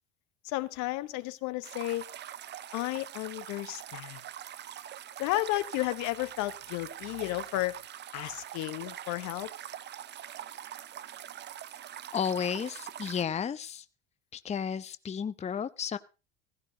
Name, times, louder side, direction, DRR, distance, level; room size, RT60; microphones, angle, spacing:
voice 1, 0.4-2.1 2.7-4.2 5.2-7.8 8.1-9.5, left 18 dB, 60° left, 1.0 m, -33 dB
sound 1, 1.6-13.2, right 11 dB, 35° right, 0.6 m, -44 dB
voice 2, 12.1-13.8 14.3-16.0, left 7 dB, 20° left, 0.7 m, -33 dB
15.5 x 15.5 x 2.8 m
hypercardioid pair, 80°, 32 cm